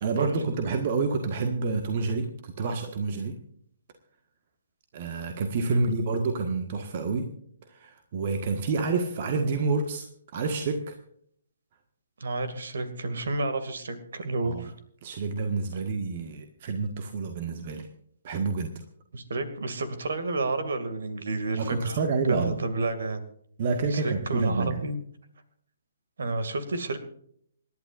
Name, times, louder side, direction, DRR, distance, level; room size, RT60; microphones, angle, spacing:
voice 1, 0.0-3.3 4.9-7.3 7.7-11.0 14.4-14.7 15.0-17.9 18.2-18.8 21.5-22.6 23.6-24.8, right 4 dB, 40° right, 5 dB, 1.6 m, -28 dB
voice 2, 5.7-6.3 12.2-14.7 19.1-22.0 22.3-23.2 23.9-25.0 26.2-27.0, right 2 dB, 55° right, 10 dB, 2.4 m, -30 dB
27.5 x 11.5 x 2.6 m, 0.65 s
figure-of-eight pair, 130°, 0 cm